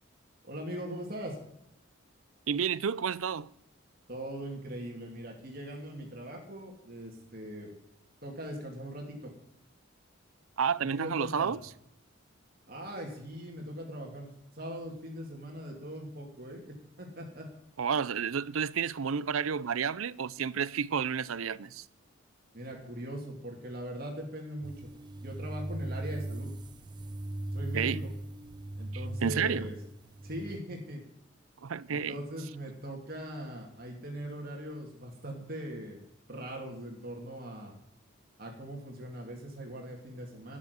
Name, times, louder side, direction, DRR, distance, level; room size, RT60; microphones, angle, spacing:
voice 1, 0.4-1.4 4.1-7.7 8.2-9.3 10.8-11.5 12.7-17.5 22.5-24.9 25.2-26.5 27.5-28.0 28.8-29.7 30.2-31.0 31.9-36.0 36.3-37.7 38.4-40.6, right 1 dB, 45° right, 2.6 m, -40 dB
voice 2, 2.5-3.5 10.6-11.6 17.8-21.8 27.7-28.0 29.2-29.7 31.6-32.2, right 6 dB, 90° right, 0.6 m, -30 dB
sound 1, 24.6-30.6, right 1 dB, 20° right, 0.5 m, -38 dB
13.0 x 7.5 x 9.5 m
head